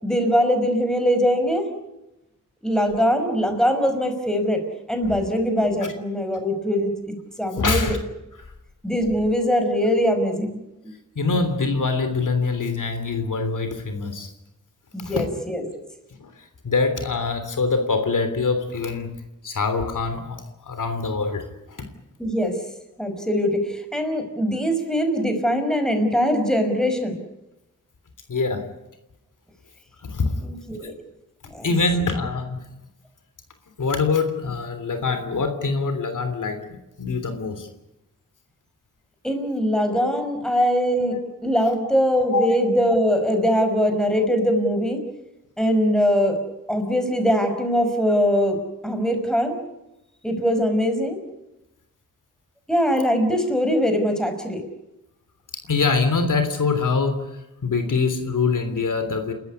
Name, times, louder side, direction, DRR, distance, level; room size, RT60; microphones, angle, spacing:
voice 1, 0.0-1.7 2.6-4.6 4.9-8.0 8.8-10.9 14.9-15.6 22.2-22.6 23.0-27.2 30.4-30.9 31.5-31.7 39.2-41.2 41.4-45.0 45.6-46.4 46.7-48.6 48.8-49.6 50.2-51.2 52.7-54.6, equal, ahead, 6 dB, 5.5 m, -22 dB
voice 2, 7.6-8.0 11.1-14.3 15.0-15.2 16.2-16.3 16.6-19.1 19.4-21.8 28.3-28.6 30.0-30.3 31.6-32.6 33.8-36.6 37.0-37.7 41.1-41.3 42.3-42.5 55.6-57.2 57.6-59.3, left 4 dB, 65° left, 8 dB, 3.3 m, -24 dB
29.5 x 14.0 x 9.7 m, 0.94 s
wide cardioid pair, 100°, 33 cm